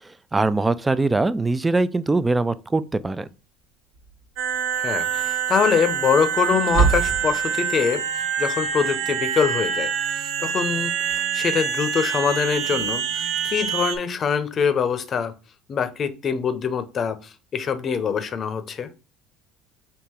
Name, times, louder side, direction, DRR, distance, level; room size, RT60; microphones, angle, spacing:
voice 1, 0.0-3.3, right 3 dB, 15° right, 0.3 m, -22 dB
sound 1, 2.0-2.1 3.9-4.4 4.7-4.8 6.6-7.5, right 5 dB, 90° right, 1.6 m, -23 dB
sound 2, 4.4-14.0, right 8 dB, 75° right, 0.7 m, -26 dB
voice 2, 4.8-8.0 8.4-9.9 10.1-15.3 15.7-18.9, left 6 dB, 40° left, 0.6 m, -24 dB
3.7 x 2.8 x 4.3 m
supercardioid pair, 90°, 0 cm